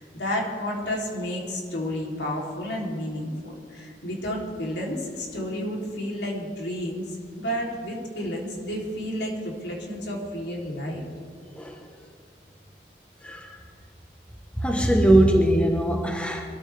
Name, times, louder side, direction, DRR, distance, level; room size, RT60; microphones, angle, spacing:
voice 1, 0.0-11.0, equal, 85° left, -2 dB, 3.3 m, -31 dB
voice 2, 13.2-13.6 14.6-16.4, right 1 dB, 5° left, 2 dB, 1.2 m, -20 dB
23.5 x 13.5 x 3.5 m, 2.3 s
head